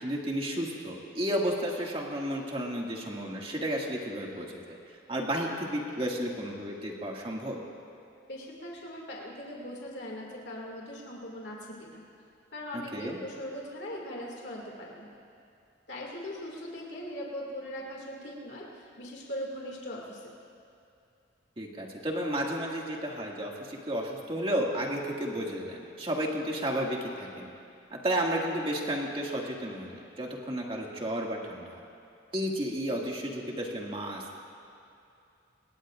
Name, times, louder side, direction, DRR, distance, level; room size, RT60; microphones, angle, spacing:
voice 1, 0.0-4.8 5.1-7.6 12.7-13.2 21.6-27.5 27.9-31.8 32.3-34.2, equal, 30° right, -2 dB, 2.0 m, -32 dB
voice 2, 8.3-12.0 12.5-15.1 15.9-20.4, equal, 65° left, -3 dB, 2.3 m, -40 dB
27.0 x 21.5 x 2.5 m, 2.6 s
head